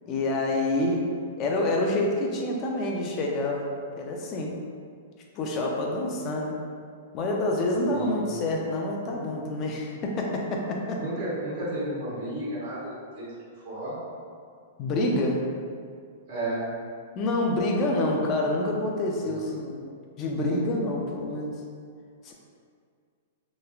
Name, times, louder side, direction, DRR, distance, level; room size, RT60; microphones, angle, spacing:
voice 1, 0.1-1.0 1.4-3.7 4.0-4.5 5.4-6.6 7.1-11.0 14.8-15.4 17.2-19.8 20.2-21.5 22.2-22.3, left 1 dB, 25° left, 0 dB, 0.4 m, -27 dB
voice 2, 7.9-8.3 10.9-13.3 13.6-14.0 16.3-16.7 19.2-19.4, right 1 dB, 40° right, -8 dB, 0.9 m, -32 dB
3.3 x 3.0 x 2.3 m, 2.2 s
supercardioid pair, 170°, 0 cm